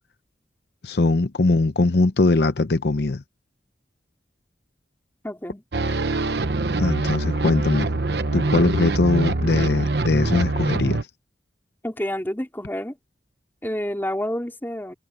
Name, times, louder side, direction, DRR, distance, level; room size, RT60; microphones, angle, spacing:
voice 1, 0.8-3.2 6.8-7.9 8.3-11.0, left 2 dB, 65° left, 0.7 m, -21 dB
voice 2, 5.2-5.6 11.8-13.0 13.6-14.9, equal, 10° left, 3.1 m, -29 dB
sound 1, 5.7-11.0, right 2 dB, 65° right, 1.0 m, -24 dB
head